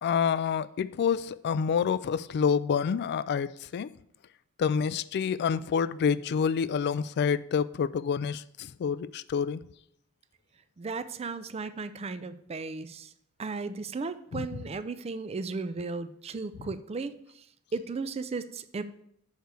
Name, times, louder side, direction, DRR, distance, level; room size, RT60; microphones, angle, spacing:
voice 1, 0.0-3.9 4.6-9.6 14.3-14.6, left 6 dB, 50° left, 0.3 m, -28 dB
voice 2, 10.8-13.1 13.4-17.4 17.7-18.8, right 4 dB, 30° right, 0.4 m, -35 dB
6.5 x 4.7 x 6.6 m
head